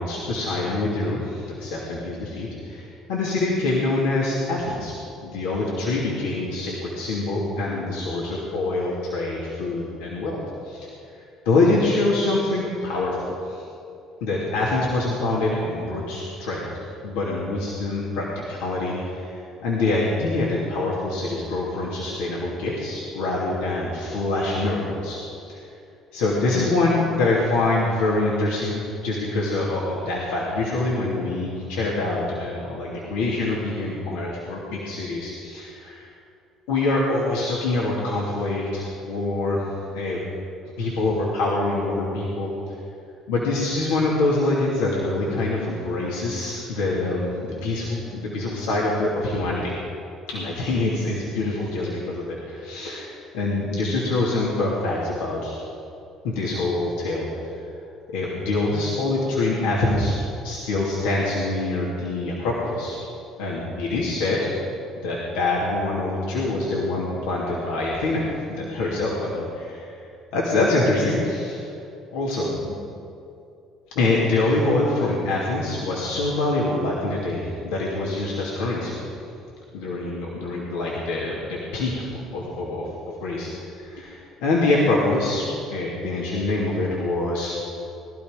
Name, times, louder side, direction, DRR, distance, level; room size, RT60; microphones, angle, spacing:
voice 1, 0.0-4.9 5.2-10.4 10.6-10.9 11.4-13.6 14.2-16.7 17.0-25.6 26.1-36.1 36.7-39.6 39.9-40.2 40.8-42.7 43.3-49.7 50.3-55.6 56.2-57.3 58.1-60.2 60.4-63.0 63.4-64.5 65.0-69.5 70.3-71.6 72.1-72.7 73.9-79.3 79.7-82.9 83.2-83.5 83.8-87.5, left 2 dB, 85° left, -5 dB, 2.9 m, -25 dB
20.5 x 12.5 x 5.3 m, 2.6 s
supercardioid pair, 80°, 0 cm